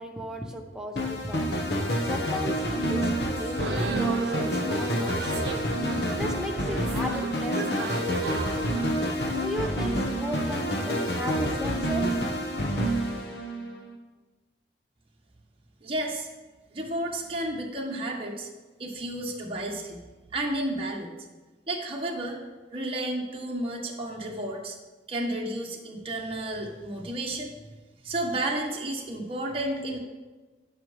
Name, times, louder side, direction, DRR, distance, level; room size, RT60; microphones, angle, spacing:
voice 1, 0.0-8.2 9.1-12.2, equal, 5° right, 1 dB, 1.0 m, -36 dB
sound 1, 1.0-13.9, equal, 65° left, 1.3 m, -28 dB
sound 2, 3.3-10.3, right 3 dB, 65° right, 0.8 m, -36 dB
voice 2, 15.8-16.3 16.7-18.5 18.8-20.0 20.3-21.1 21.7-22.4 22.7-24.8 25.1-27.5 28.0-30.0, right 1 dB, 30° right, -2 dB, 1.3 m, -32 dB
16.0 x 5.7 x 3.3 m, 1.2 s
head